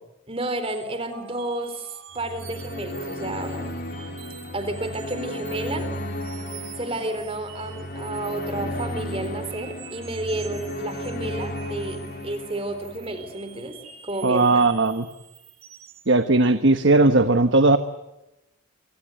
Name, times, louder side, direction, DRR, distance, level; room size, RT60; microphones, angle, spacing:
voice 1, 0.3-3.7 4.5-5.9 6.8-13.8 14.0-14.7, right 2 dB, 25° right, 10 dB, 3.9 m, -31 dB
sound 1, 0.6-16.1, right 11 dB, 80° right, 5.4 m, -47 dB
sound 2, 2.2-13.5, left 1 dB, 45° left, 3.9 m, -34 dB
voice 2, 14.2-15.1 16.1-17.8, right 2 dB, 60° right, 9 dB, 1.2 m, -18 dB
30.0 x 25.0 x 8.0 m, 0.96 s
head